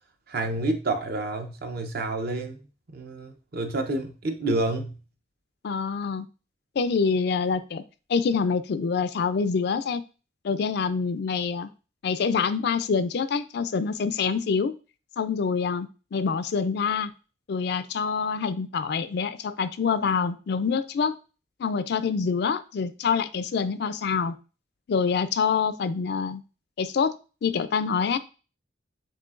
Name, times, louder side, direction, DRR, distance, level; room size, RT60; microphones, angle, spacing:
voice 1, 0.3-2.6 2.9-5.0, right 2 dB, 55° right, 5 dB, 0.7 m, -29 dB
voice 2, 5.6-6.3 6.8-7.8 8.1-10.0 10.4-11.7 12.0-14.7 15.2-17.1 17.5-21.2 21.6-24.4 24.9-26.4 26.8-27.1 27.4-28.2, left 5 dB, 60° left, 13 dB, 0.4 m, -26 dB
7.4 x 2.7 x 2.5 m, 0.34 s
head